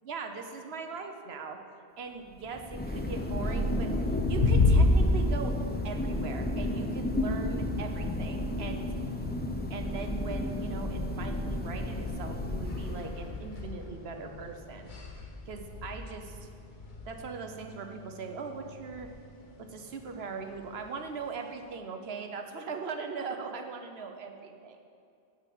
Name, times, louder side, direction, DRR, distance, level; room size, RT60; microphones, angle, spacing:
voice 1, 0.0-1.6 2.0-3.9 4.3-5.5 5.8-8.9 9.7-14.9 15.5-16.5 17.0-19.1 19.6-24.8, right 5 dB, 85° right, 5 dB, 1.1 m, -40 dB
Thunder, 2.4-13.4, left 1 dB, 10° left, 0.6 m, -32 dB
sound 1, 3.2-21.7, left 2 dB, 50° left, 1.2 m, -33 dB
8.9 x 6.3 x 7.5 m, 2.4 s
omnidirectional pair, 1.0 m